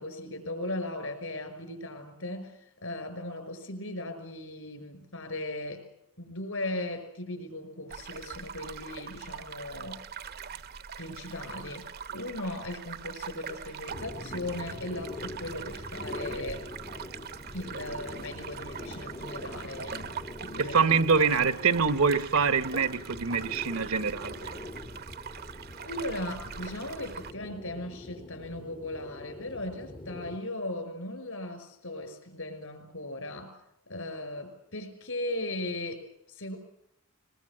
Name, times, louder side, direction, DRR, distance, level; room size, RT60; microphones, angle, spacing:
voice 1, 0.0-5.8 6.2-10.1 11.0-16.7 17.5-20.1 20.4-21.5 25.8-33.6 33.9-36.6, left 1 dB, 70° left, 5.7 m, -38 dB
sound 1, 7.9-27.3, right 7 dB, 45° right, 0.8 m, -42 dB
sound 2, 13.9-30.4, left 2 dB, 20° left, 0.8 m, -44 dB
voice 2, 20.6-24.5, right 5 dB, 70° right, 1.0 m, -25 dB
22.0 x 22.0 x 7.4 m
head